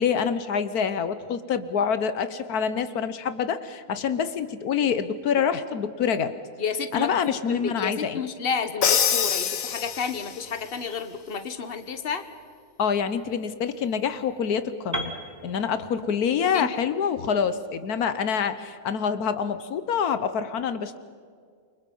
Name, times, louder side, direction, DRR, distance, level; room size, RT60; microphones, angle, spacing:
voice 1, 0.0-6.3 6.9-8.2 12.8-15.1 15.4-21.0, left 7 dB, 80° left, 11 dB, 1.5 m, -26 dB
voice 2, 6.6-12.2 16.5-16.7, left 6 dB, 40° left, 9 dB, 1.6 m, -31 dB
Crash cymbal, 8.8-10.5, left 8 dB, 65° left, 1.4 m, -24 dB
Piano, 14.9-18.9, equal, 10° right, 1.7 m, -38 dB
29.0 x 25.0 x 5.5 m, 2.1 s
omnidirectional pair, 1.6 m